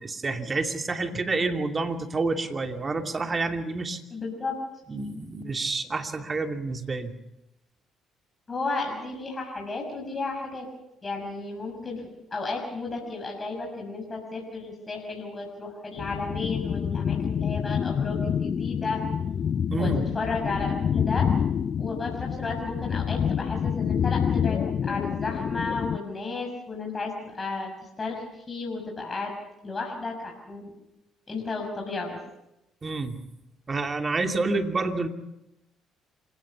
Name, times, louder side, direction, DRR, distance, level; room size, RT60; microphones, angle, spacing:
voice 1, 0.0-4.0 4.9-7.1 19.7-20.1 32.8-33.2 33.7-35.1, right 3 dB, 35° right, 5 dB, 2.6 m, -28 dB
voice 2, 4.1-4.6 8.5-10.7 11.0-19.0 19.7-21.3 21.8-27.7 28.0-29.3 29.6-30.7 31.3-32.2, left 3 dB, 30° left, 1 dB, 6.2 m, -33 dB
sound 1, 16.0-26.0, left 8 dB, 50° left, 0.8 m, -27 dB
27.0 x 17.0 x 7.0 m, 0.90 s
hypercardioid pair, 55°, 0 cm